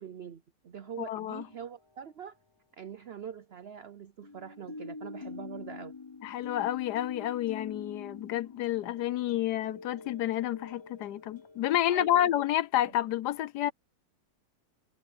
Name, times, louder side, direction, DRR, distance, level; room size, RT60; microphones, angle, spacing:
voice 1, 0.0-2.4 2.8-5.9 11.9-12.3, right 8 dB, 85° right, 0.5 m, -43 dB
sound 1, 0.8-1.7 4.2-12.0, left 4 dB, 40° left, 0.4 m, -46 dB
voice 2, 1.0-1.4 6.2-13.7, left 12 dB, 75° left, 1.2 m, -29 dB
omnidirectional pair, 1.9 m